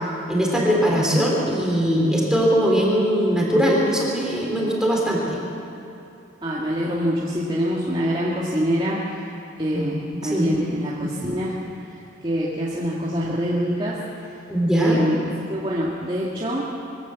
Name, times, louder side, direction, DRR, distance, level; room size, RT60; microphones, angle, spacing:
voice 1, 0.3-5.2 9.7-9.8 10.2-10.5 14.5-15.0, equal, 5° right, -3 dB, 3.4 m, -20 dB
voice 2, 6.4-9.2 9.6-11.5 11.9-14.0 14.7-15.2 15.5-16.6, equal, 25° right, -6 dB, 2.0 m, -25 dB
23.5 x 14.5 x 8.2 m, 2.8 s
head